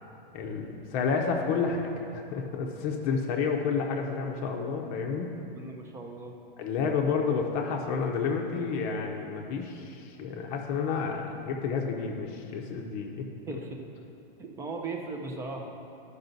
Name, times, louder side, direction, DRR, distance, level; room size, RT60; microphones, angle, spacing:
voice 1, 0.3-5.3 6.6-13.2, left 5 dB, 30° left, 1 dB, 0.7 m, -30 dB
voice 2, 5.5-6.3 13.5-13.8 14.4-15.7, right 3 dB, 10° right, 2 dB, 0.5 m, -38 dB
12.0 x 5.5 x 4.0 m, 2.6 s
supercardioid pair, 150°, 29 cm